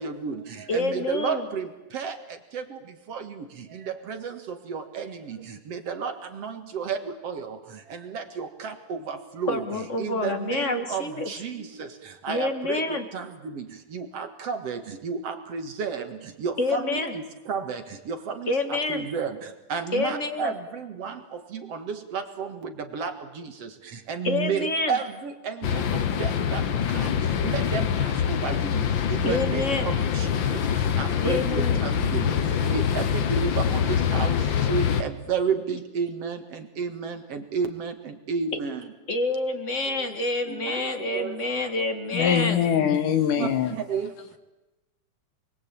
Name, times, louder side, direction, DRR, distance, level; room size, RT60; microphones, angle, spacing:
voice 1, 0.0-38.9 40.0-40.1 40.4-41.7 42.6-42.8 43.4-44.4, right 6 dB, 55° right, 7 dB, 2.5 m, -33 dB
voice 2, 0.7-1.4 9.5-11.3 12.3-13.0 16.6-17.1 18.5-19.0 19.9-20.5 24.2-25.0 29.2-29.9 31.2-31.8 39.1-42.6, left 2 dB, 25° left, 7 dB, 2.1 m, -27 dB
sound 1, 25.6-35.0, left 8 dB, 60° left, 1.3 m, -25 dB
voice 3, 42.1-43.7, left 8 dB, 90° left, 8 dB, 3.4 m, -23 dB
28.0 x 22.0 x 8.7 m, 1.0 s
omnidirectional pair, 3.6 m